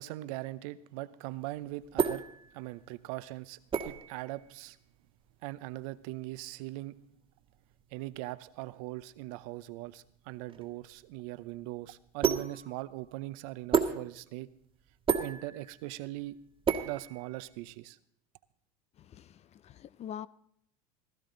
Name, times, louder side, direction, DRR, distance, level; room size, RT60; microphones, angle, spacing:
voice 1, 0.0-2.2 2.5-4.8 5.4-7.0 7.9-14.5 15.1-16.4 16.8-18.0, right 17 dB, 70° right, 0.7 m, -40 dB
sound 1, 1.3-17.7, right 6 dB, 25° right, 1.5 m, -35 dB
voice 2, 19.0-20.3, left 9 dB, 35° left, 0.5 m, -44 dB
16.5 x 14.5 x 3.9 m
hypercardioid pair, 95°, 19 cm